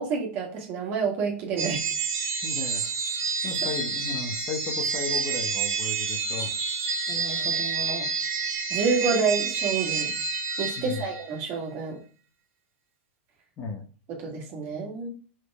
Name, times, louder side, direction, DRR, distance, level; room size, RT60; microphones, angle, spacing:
voice 1, 0.0-1.8 7.1-8.1 8.7-10.1 10.6-12.0 14.1-15.1, right 4 dB, 35° right, 0 dB, 1.9 m, -29 dB
sound 1, 1.6-11.4, right 5 dB, 85° right, 2.2 m, -29 dB
voice 2, 2.4-2.9 3.4-6.5 10.8-11.0 13.6-13.8, left 4 dB, 25° left, 2 dB, 1.0 m, -35 dB
5.0 x 4.5 x 4.8 m, 0.39 s
supercardioid pair, 165°, 7 cm